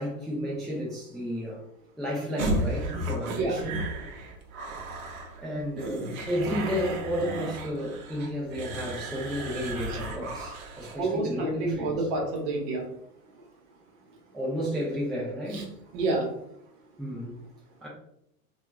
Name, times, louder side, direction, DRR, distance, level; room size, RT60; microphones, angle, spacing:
voice 1, 0.0-1.6 2.0-3.8 5.4-12.1 14.3-15.7 17.0-17.4 17.8-17.9, equal, ahead, -6 dB, 0.4 m, -32 dB
sound 1, 2.4-11.0, right 1 dB, 70° right, 0.7 m, -34 dB
voice 2, 3.3-3.6 11.0-12.8 15.5-15.6 15.9-16.3, right 2 dB, 50° right, 1 dB, 0.9 m, -28 dB
2.8 x 2.3 x 2.3 m, 0.75 s
hypercardioid pair, 100°, 43 cm